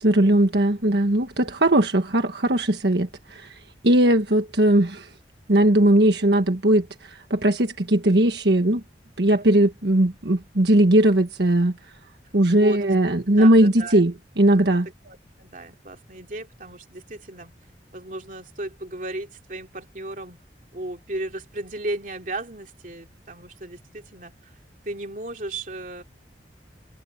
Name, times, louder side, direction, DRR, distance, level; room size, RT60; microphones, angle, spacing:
voice 1, 0.0-3.6 3.8-5.1 5.5-8.8 9.2-11.7 12.3-14.9, right 1 dB, 75° right, 1.5 m, -19 dB
voice 2, 12.5-12.8 13.3-14.0 14.7-17.5 17.9-20.4 20.7-24.5 24.8-26.0, right 2 dB, 50° right, 2.8 m, -35 dB
head